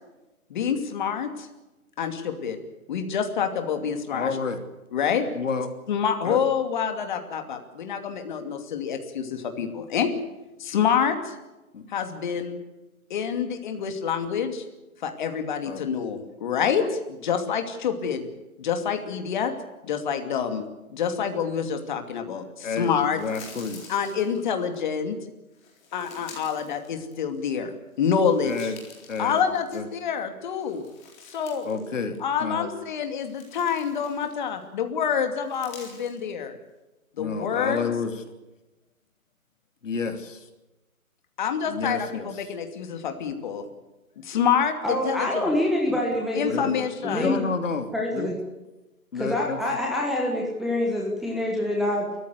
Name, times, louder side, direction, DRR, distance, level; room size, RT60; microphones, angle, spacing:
voice 1, 0.5-1.5 2.0-2.6 2.9-4.4 4.9-5.3 5.9-10.1 10.6-11.3 11.9-12.6 13.1-14.7 15.0-18.3 18.6-19.5 19.8-23.2 23.9-25.2 25.9-27.7 28.0-28.7 29.2-30.8 31.3-36.6 37.2-37.9 41.4-43.7 44.2-45.6 46.3-47.4, left 7 dB, 35° left, 7 dB, 2.7 m, -27 dB
voice 2, 4.1-4.6 5.3-5.7 6.2-6.4 11.7-11.9 15.6-15.8 16.8-16.9 22.6-23.8 28.4-28.8 29.1-29.4 29.7-29.9 31.6-32.7 37.2-38.2 39.8-40.5 41.7-42.3 46.5-46.7 47.0-48.3 49.1-49.6, left 5 dB, 60° left, 7 dB, 3.3 m, -30 dB
sound 1, 22.8-24.8 25.5-27.5 27.9-30.1 30.4-31.9 32.2-32.3 32.9-34.6 35.3-36.2, left 4 dB, 15° left, 4.1 m, -48 dB
voice 3, 44.8-46.5 47.0-47.4 47.9-48.3 49.1-52.1, left 1 dB, ahead, -3 dB, 1.3 m, -26 dB
30.0 x 14.5 x 8.2 m, 1.0 s
hypercardioid pair, 155°, 42 cm